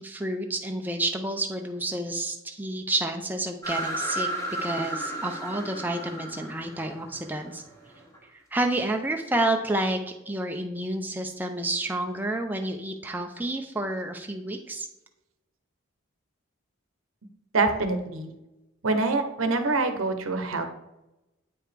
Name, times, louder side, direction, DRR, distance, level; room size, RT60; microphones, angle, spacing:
voice 1, 0.0-4.3 4.6-7.6 8.5-10.0 10.3-14.9, right 1 dB, 10° right, 3 dB, 0.5 m, -29 dB
sound 1, 3.6-8.2, right 1 dB, 15° left, 1.3 m, -33 dB
voice 2, 17.5-18.3 18.8-20.7, right 3 dB, 85° right, 7 dB, 0.8 m, -25 dB
8.7 x 4.8 x 3.4 m, 0.94 s
head